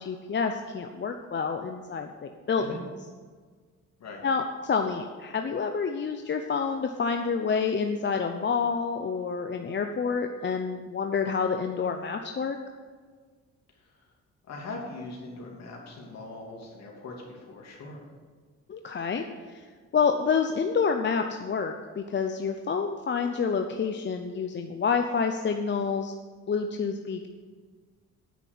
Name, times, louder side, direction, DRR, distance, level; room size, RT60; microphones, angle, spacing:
voice 1, 0.0-2.6 4.2-12.6 18.7-19.6 19.9-26.1 26.5-27.3, left 5 dB, 40° left, 5 dB, 0.7 m, -28 dB
voice 2, 14.5-18.1, left 2 dB, 60° left, -1 dB, 2.9 m, -41 dB
9.3 x 6.0 x 8.4 m, 1.5 s
cardioid pair, 90°, 30 cm